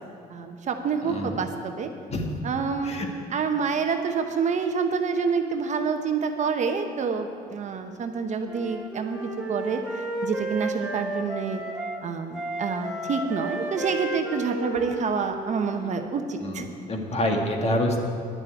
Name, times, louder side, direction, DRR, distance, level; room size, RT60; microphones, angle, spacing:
voice 1, 0.3-1.9 2.4-2.9 3.3-9.2 9.5-9.8 10.2-11.6 12.0-16.7, right 5 dB, 45° right, 6 dB, 1.0 m, -27 dB
voice 2, 1.0-1.4 2.1-2.2 2.8-3.1 16.4-18.0, left 1 dB, 40° left, 2 dB, 1.7 m, -27 dB
Wind instrument woodwind instrument, 8.5-12.0 12.3-16.1, right 2 dB, 5° right, 1.6 m, -33 dB
10.5 x 6.8 x 9.0 m, 2.3 s
cardioid pair, 110°, 17 cm